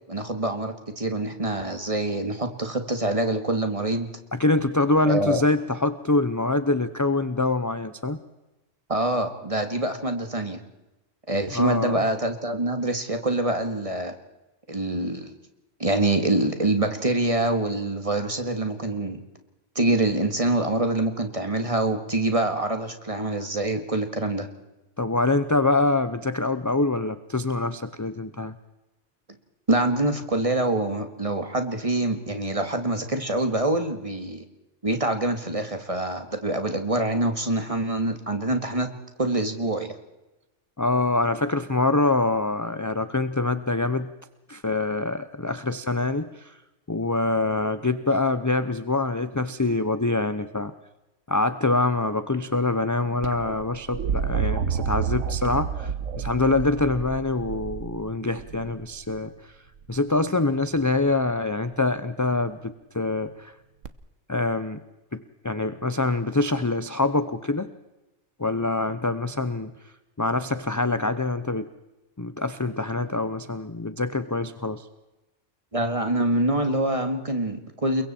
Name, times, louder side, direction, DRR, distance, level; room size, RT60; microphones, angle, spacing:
voice 1, 0.1-4.1 5.1-5.4 8.9-10.6 11.3-14.1 14.7-15.3 15.8-19.2 19.8-24.5 29.7-34.4 34.8-38.9 39.2-39.9 75.7-78.0, right 2 dB, 25° right, 6 dB, 2.1 m, -25 dB
voice 2, 4.3-8.2 11.5-12.0 25.0-28.5 40.8-44.1 44.5-46.6 46.9-50.7 51.3-59.5 59.9-63.5 64.3-64.8 65.1-67.7 68.4-69.7 70.2-71.7 72.2-74.9, left 2 dB, 20° left, 11 dB, 0.7 m, -25 dB
sound 1, 53.2-59.2 60.8-61.3 63.8-63.9, right 7 dB, 80° right, 1.4 m, -30 dB
29.5 x 22.5 x 4.5 m, 1.0 s
omnidirectional pair, 1.3 m